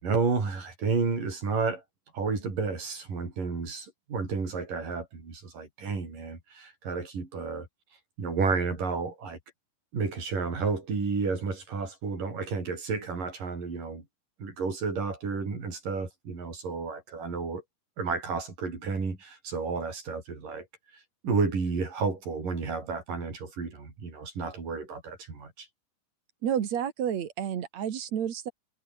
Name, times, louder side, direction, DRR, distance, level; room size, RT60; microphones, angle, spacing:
voice 1, 0.0-1.8 2.1-7.7 8.2-9.4 9.9-14.0 14.4-17.6 18.0-20.7 21.2-25.7, right 4 dB, 90° right, 7.7 m, -31 dB
voice 2, 26.4-28.5, right 9 dB, 60° right, 3.0 m, -30 dB
omnidirectional pair, 3.7 m